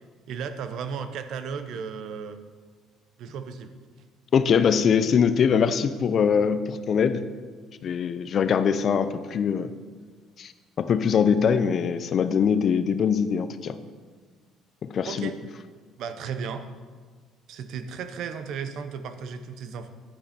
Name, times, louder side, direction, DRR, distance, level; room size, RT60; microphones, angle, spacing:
voice 1, 0.3-2.4 3.2-3.7 15.0-15.4 16.0-16.7 17.5-19.9, right 6 dB, 65° right, 10 dB, 0.8 m, -34 dB
voice 2, 4.3-7.3 7.8-9.7 10.4-10.5 10.8-13.8 14.8-15.3, left 7 dB, 50° left, 12 dB, 0.5 m, -22 dB
10.5 x 8.5 x 4.3 m, 1.5 s
cardioid pair, 100°, 0 cm